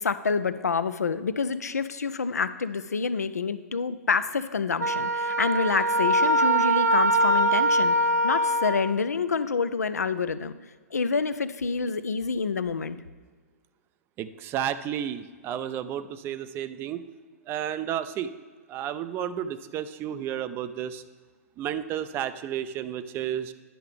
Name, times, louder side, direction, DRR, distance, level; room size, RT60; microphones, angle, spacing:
voice 1, 0.0-10.6 10.9-13.0, left 5 dB, 85° left, 13 dB, 0.4 m, -27 dB
Wind instrument woodwind instrument, 4.8-8.9, right 1 dB, 90° right, 0.5 m, -23 dB
voice 2, 14.2-17.0 17.5-18.3 18.7-21.0 21.6-23.5, right 10 dB, 25° right, 13 dB, 0.4 m, -32 dB
10.0 x 5.5 x 3.4 m, 1.5 s
figure-of-eight pair, 110°, 8 cm